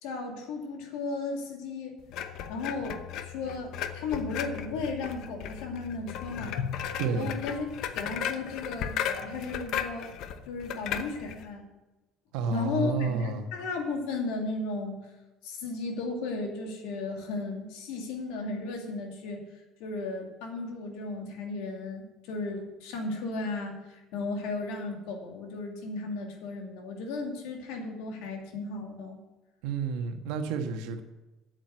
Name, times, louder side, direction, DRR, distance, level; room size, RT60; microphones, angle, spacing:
voice 1, 0.0-6.6 7.1-7.7 7.9-10.1 10.5-11.6 12.5-15.0 15.4-19.4 19.8-29.2, left 3 dB, 90° left, 2 dB, 2.5 m, -35 dB
sound 1, 2.1-11.5, left 9 dB, 65° left, 0.9 m, -36 dB
voice 2, 7.0-7.3 12.3-13.5 29.6-31.0, right 4 dB, 90° right, 5 dB, 1.3 m, -30 dB
8.9 x 7.9 x 7.9 m, 1.1 s
cardioid pair, 120°, 0 cm